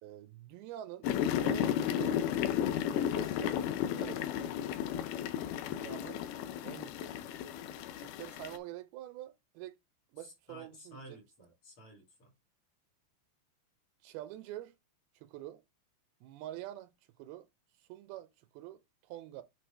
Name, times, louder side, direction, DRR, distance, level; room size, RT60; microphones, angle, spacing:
voice 1, 0.0-1.1 1.4-2.3 2.9-4.3 5.7-6.2 6.6-7.6 8.0-9.8 10.1-11.2 14.0-14.7 15.2-15.6 16.2-16.9 17.2-17.5 17.8-19.4, right 13 dB, 85° right, 2.6 m, -46 dB
sound 1, 1.0-8.6, left 10 dB, 80° left, 1.9 m, -33 dB
voice 2, 10.2-12.3, equal, 40° left, 2.9 m, -53 dB
7.9 x 4.0 x 3.3 m
omnidirectional pair, 4.4 m